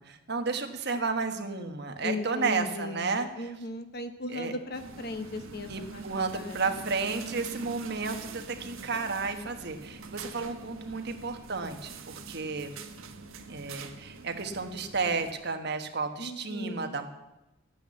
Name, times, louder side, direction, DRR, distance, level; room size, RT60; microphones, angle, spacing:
voice 1, 0.0-3.3 4.3-4.5 5.7-12.8 13.5-17.1, right 4 dB, 55° right, 6 dB, 1.3 m, -32 dB
voice 2, 2.0-6.1 6.3-6.6 16.2-16.9, left 2 dB, 50° left, 8 dB, 1.2 m, -37 dB
sound 1, 4.7-15.3, right 4 dB, 90° right, 1.2 m, -44 dB
11.5 x 9.2 x 8.3 m, 0.97 s
head